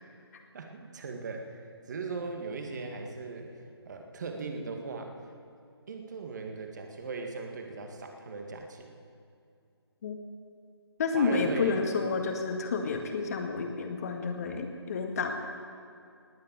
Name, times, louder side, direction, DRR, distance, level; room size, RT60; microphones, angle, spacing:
voice 1, 0.5-3.5 3.9-5.1 5.9-8.9 11.1-12.3, right 4 dB, 45° right, 4 dB, 2.0 m, -39 dB
voice 2, 11.0-15.3, left 4 dB, 35° left, 4 dB, 1.9 m, -30 dB
19.5 x 9.6 x 7.7 m, 2.4 s
figure-of-eight pair, 150°, 14 cm